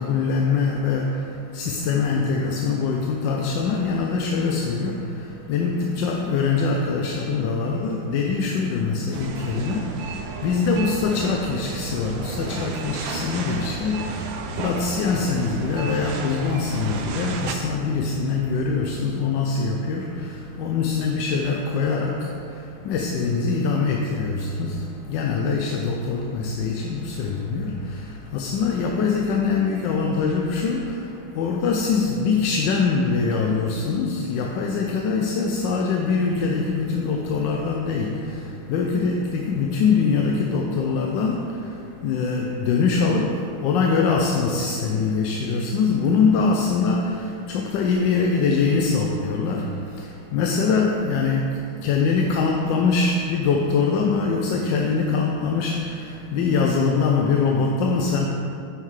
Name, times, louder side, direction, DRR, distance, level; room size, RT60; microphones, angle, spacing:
voice 1, 0.0-58.3, left 4 dB, 75° left, 1 dB, 1.2 m, -23 dB
sound 1, 9.1-17.6, right 4 dB, 85° right, 1.4 m, -33 dB
9.7 x 5.8 x 3.2 m, 2.5 s
omnidirectional pair, 2.1 m